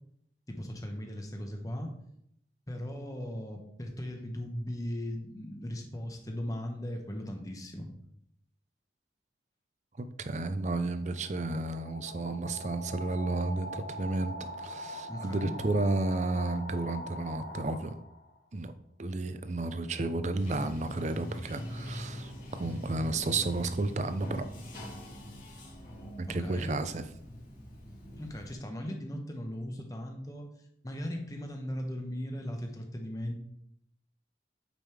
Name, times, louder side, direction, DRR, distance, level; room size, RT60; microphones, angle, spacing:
voice 1, 0.5-1.9 2.7-7.9 15.1-15.5 26.3-26.7 28.2-30.5 30.8-33.4, equal, 20° left, 3 dB, 1.0 m, -38 dB
voice 2, 10.2-17.9 18.5-18.7 19.0-24.5 26.2-27.0, right 2 dB, 40° right, 10 dB, 0.5 m, -32 dB
sound 1, 10.6-18.4, equal, 65° left, 1.0 m, -43 dB
Bathtub (filling or washing), 20.3-28.5, equal, 45° left, 2.5 m, -43 dB
8.8 x 5.3 x 3.3 m, 0.75 s
head